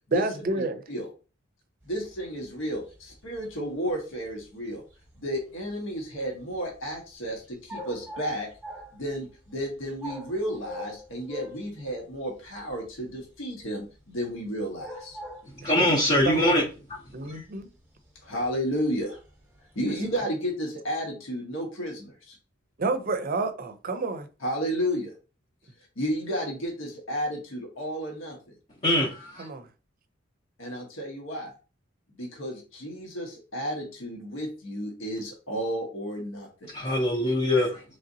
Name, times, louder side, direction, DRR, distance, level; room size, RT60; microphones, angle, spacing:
voice 1, 0.1-0.8 15.6-15.8 16.2-16.7 17.1-17.7 22.8-24.3 29.4-29.7, right 3 dB, 45° right, 0.5 m, -29 dB
voice 2, 1.8-4.8 5.2-8.5 8.9-15.2 18.2-19.2 19.7-22.4 24.4-25.1 26.0-28.4 30.6-31.5 32.2-36.7, equal, 80° left, 1.2 m, -32 dB
sound 1, 1.8-20.2, equal, 10° right, 0.9 m, -45 dB
voice 3, 15.5-16.6 17.2-17.4 28.8-29.5 36.7-37.8, left 1 dB, 35° left, 0.7 m, -23 dB
3.8 x 3.3 x 2.7 m
head